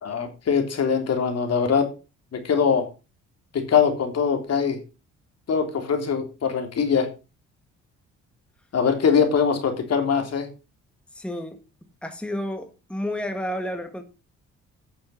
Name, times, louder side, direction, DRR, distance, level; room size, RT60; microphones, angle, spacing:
voice 1, 0.0-1.9 2.3-2.9 3.5-4.8 5.5-7.1 8.7-10.5, left 6 dB, 55° left, 3.3 m, -22 dB
voice 2, 11.1-11.6 12.0-14.0, left 1 dB, 5° left, 1.6 m, -30 dB
9.9 x 6.9 x 5.7 m
cardioid pair, 90°, 30 cm